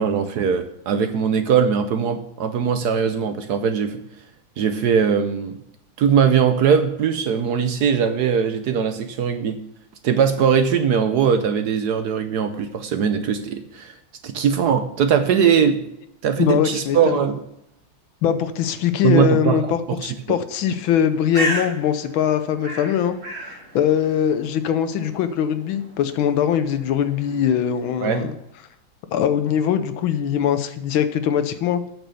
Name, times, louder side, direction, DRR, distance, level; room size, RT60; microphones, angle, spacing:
voice 1, 0.0-4.0 4.6-5.6 6.0-9.6 10.0-14.0 14.2-15.8 16.2-17.4 19.0-20.0 20.3-20.4 28.0-28.2, right 7 dB, 65° right, 9 dB, 1.1 m, -20 dB
voice 2, 16.4-17.2 18.2-23.2 23.7-28.3 29.1-31.8, left 9 dB, 80° left, 10 dB, 1.6 m, -21 dB
Bird, 20.9-28.5, equal, 35° right, 2.9 m, -34 dB
8.5 x 6.3 x 6.7 m, 0.80 s
omnidirectional pair, 2.2 m